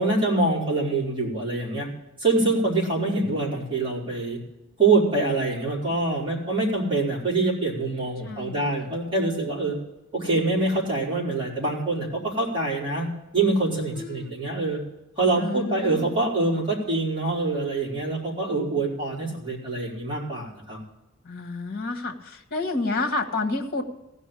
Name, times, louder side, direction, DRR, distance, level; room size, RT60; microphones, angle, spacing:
voice 1, 0.0-1.9 2.2-4.4 4.8-9.8 10.1-14.8 15.2-20.8, right 2 dB, 25° right, -6 dB, 4.1 m, -25 dB
voice 2, 8.2-8.9 13.9-14.4 15.3-16.1 21.2-23.8, left 3 dB, 50° left, 6 dB, 1.5 m, -30 dB
16.0 x 5.4 x 9.9 m, 0.93 s
head